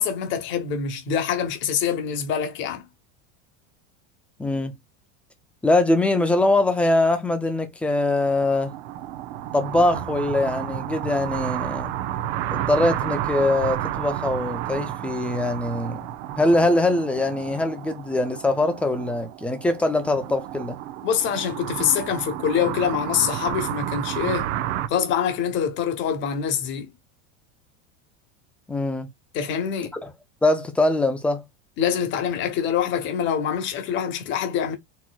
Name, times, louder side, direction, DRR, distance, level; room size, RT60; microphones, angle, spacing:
voice 1, 0.0-2.8 21.0-24.5 24.9-26.9 29.3-29.9 31.8-34.7, left 8 dB, 35° left, 1.0 m, -25 dB
voice 2, 4.4-4.7 5.6-8.7 9.5-11.9 12.5-16.0 16.4-20.8 28.7-29.1 29.9-30.1 30.4-31.4, left 2 dB, 5° left, 0.4 m, -22 dB
sound 1, 8.2-24.9, right 12 dB, 65° right, 0.8 m, -31 dB
4.3 x 2.9 x 2.3 m
supercardioid pair, 160°, 35 cm